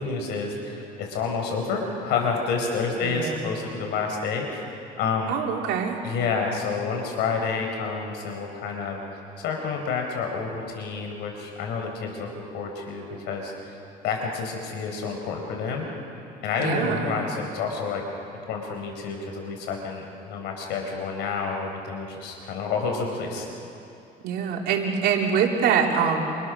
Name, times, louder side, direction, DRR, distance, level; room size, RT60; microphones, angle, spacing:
voice 1, 0.0-4.7 5.0-5.4 6.0-9.0 9.4-13.8 14.0-15.9 16.4-18.0 18.5-23.5, left 5 dB, 90° left, 2 dB, 4.9 m, -29 dB
voice 2, 3.0-3.4 5.3-6.0 16.6-17.2 24.2-26.2, right 7 dB, 80° right, 0 dB, 3.7 m, -24 dB
28.5 x 27.0 x 6.6 m, 2.8 s
cardioid pair, 110°, 17 cm